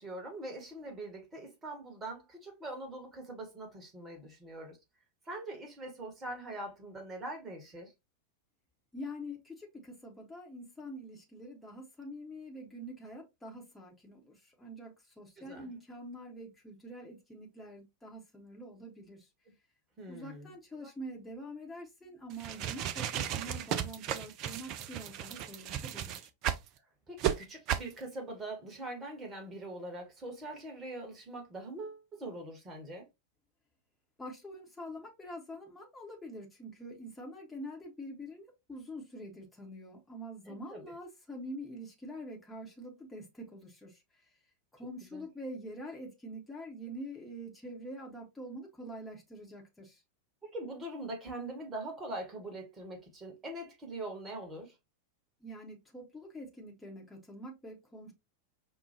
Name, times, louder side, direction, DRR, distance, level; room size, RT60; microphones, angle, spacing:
voice 1, 0.0-4.8 5.2-7.9 15.4-15.7 20.0-20.9 27.1-33.1 40.5-40.9 45.1-45.3 50.4-54.7, right 1 dB, 20° right, 1.5 m, -43 dB
voice 2, 8.9-19.3 20.1-26.3 34.2-44.0 44.7-50.0 55.4-58.1, equal, 10° left, 1.0 m, -45 dB
sound 1, 22.3-26.7 27.2-27.3 27.7-27.9, right 10 dB, 40° right, 0.4 m, -34 dB
5.2 x 2.3 x 2.8 m
figure-of-eight pair, 90°, 0 cm